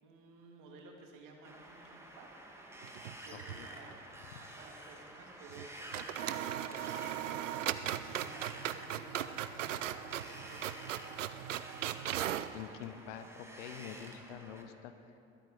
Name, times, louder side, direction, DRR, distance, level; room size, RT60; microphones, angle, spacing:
voice 1, 0.0-2.5 2.7-11.4, right 3 dB, 60° right, 1 dB, 2.6 m, -55 dB
Wind, 1.4-14.6, right 1 dB, 5° right, 2.1 m, -51 dB
sound 1, 2.8-3.6 3.9-4.0 5.5-5.7 5.9-12.5, right 11 dB, 90° right, 0.5 m, -38 dB
voice 2, 12.5-14.9, left 9 dB, 75° left, 9 dB, 0.9 m, -46 dB
21.0 x 9.0 x 5.0 m, 2.7 s
hypercardioid pair, 65°, 36 cm